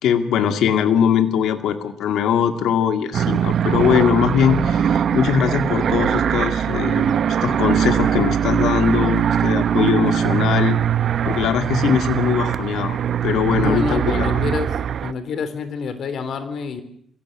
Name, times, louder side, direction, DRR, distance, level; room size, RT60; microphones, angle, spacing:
voice 1, 0.0-10.8 11.3-13.0 13.2-14.3, left 8 dB, 80° left, 8 dB, 2.2 m, -21 dB
sound 1, 3.1-15.1, right 8 dB, 60° right, 0.8 m, -21 dB
voice 2, 13.6-16.8, left 5 dB, 60° left, 12 dB, 3.3 m, -27 dB
22.0 x 16.5 x 8.8 m, 0.65 s
cardioid pair, 90°, 0 cm